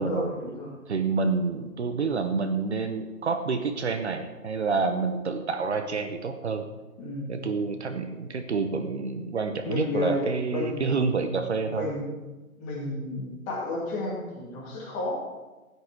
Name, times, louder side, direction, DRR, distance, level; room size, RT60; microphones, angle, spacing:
voice 1, 0.0-0.7 7.0-7.4 9.6-10.8 11.7-12.1 12.6-15.2, left 2 dB, 15° left, -3 dB, 2.2 m, -32 dB
voice 2, 0.9-6.7 7.3-11.9, right 4 dB, 45° right, 7 dB, 1.0 m, -28 dB
15.0 x 9.4 x 4.6 m, 1.2 s
figure-of-eight pair, 145°, 44 cm